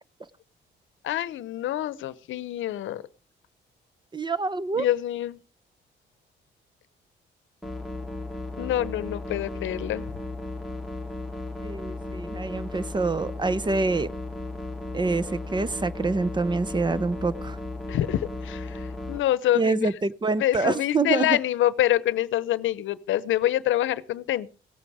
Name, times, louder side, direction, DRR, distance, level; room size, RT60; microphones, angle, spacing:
voice 1, 1.0-3.0 4.7-5.4 8.6-10.1 17.9-19.9 20.4-24.5, left 13 dB, 75° left, 0.8 m, -26 dB
voice 2, 4.1-4.8 11.6-14.1 14.9-17.6 19.5-21.4, right 3 dB, 25° right, 0.7 m, -26 dB
sound 1, 7.6-19.2, left 2 dB, ahead, 1.7 m, -35 dB
17.5 x 8.6 x 4.9 m
cardioid pair, 90°, 20 cm